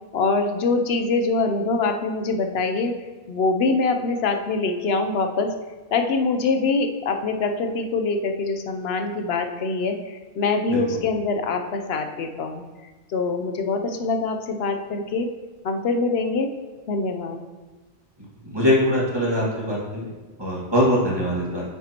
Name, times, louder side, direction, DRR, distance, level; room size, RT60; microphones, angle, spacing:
voice 1, 0.1-5.6 5.9-12.6 13.1-15.3 15.6-16.5 16.9-17.4, left 3 dB, 70° left, 6 dB, 0.9 m, -24 dB
voice 2, 10.7-11.0 18.4-20.1 20.4-21.6, equal, 25° right, -5 dB, 1.9 m, -22 dB
9.2 x 5.9 x 2.9 m, 1.3 s
omnidirectional pair, 1.1 m